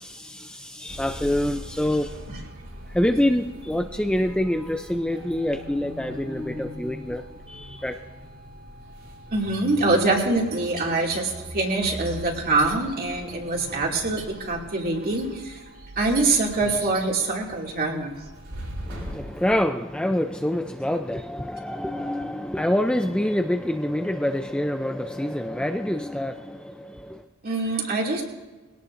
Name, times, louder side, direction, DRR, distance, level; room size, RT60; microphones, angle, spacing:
voice 1, 0.0-2.2 2.9-8.0 18.9-27.2, left 1 dB, 5° left, 0.4 m, -26 dB
sound 1, 0.9-19.6, equal, 75° right, 6.2 m, -41 dB
voice 2, 9.3-15.6 16.0-18.2 27.4-28.2, right 2 dB, 45° right, 2.5 m, -24 dB
22.0 x 17.5 x 2.6 m
head